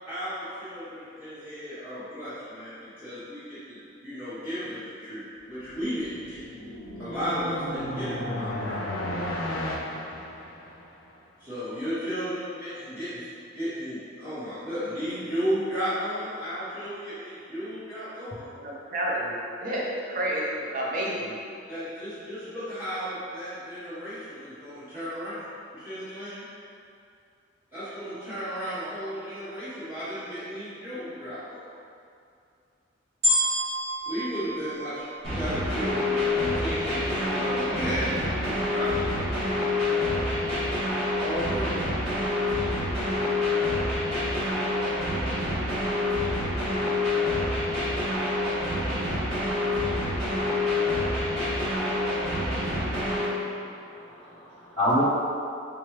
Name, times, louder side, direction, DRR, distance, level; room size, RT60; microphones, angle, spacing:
voice 1, 0.0-6.4 7.0-9.7 11.4-18.5 21.7-26.4 27.7-31.6 34.1-39.0 41.2-41.8, equal, 10° right, -17 dB, 0.9 m, -34 dB
sound 1, 5.8-11.0, left 1 dB, 85° left, 0.5 m, -34 dB
voice 2, 18.6-21.4, right 1 dB, 45° right, -4 dB, 0.6 m, -30 dB
sound 2, 33.2-35.6 36.3-36.4, equal, 60° right, 1.4 m, -28 dB
sound 3, 35.2-53.2, left 2 dB, 30° right, 1.2 m, -27 dB
voice 3, 50.3-51.8 53.6-55.0, equal, 25° left, -11 dB, 0.5 m, -31 dB
3.4 x 3.0 x 3.1 m, 2.5 s
head